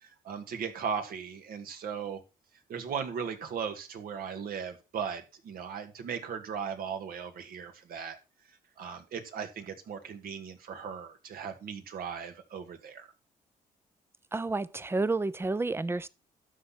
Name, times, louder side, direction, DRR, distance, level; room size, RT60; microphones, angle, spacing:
voice 1, 0.0-2.2 2.7-8.2 8.8-13.1, right 7 dB, 70° right, 2.0 m, -37 dB
voice 2, 14.3-16.1, right 3 dB, 15° right, 0.7 m, -30 dB
12.5 x 4.3 x 6.0 m
cardioid pair, 80°, 16 cm